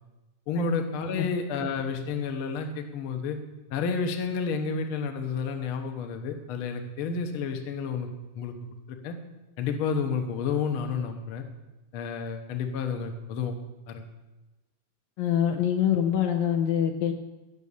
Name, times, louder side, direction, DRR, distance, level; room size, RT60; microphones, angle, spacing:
voice 1, 0.5-3.4 3.7-8.1 8.3-8.5 8.9-9.1 9.6-11.5 11.9-13.6 13.9-14.0, left 5 dB, 60° left, 5 dB, 1.6 m, -30 dB
voice 2, 15.2-17.1, left 9 dB, 75° left, 4 dB, 2.0 m, -25 dB
17.0 x 6.2 x 7.0 m, 1.1 s
omnidirectional pair, 3.7 m